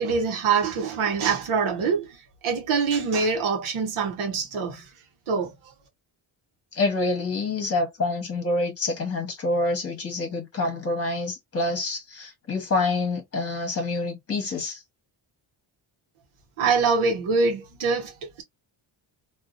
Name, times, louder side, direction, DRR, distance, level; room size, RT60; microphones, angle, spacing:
voice 1, 0.0-4.9 5.3-5.5 16.6-18.4, right 5 dB, 80° right, 0.9 m, -24 dB
voice 2, 6.7-14.8, left 2 dB, 30° left, 1.1 m, -27 dB
2.7 x 2.4 x 2.5 m
wide cardioid pair, 175°, 49 cm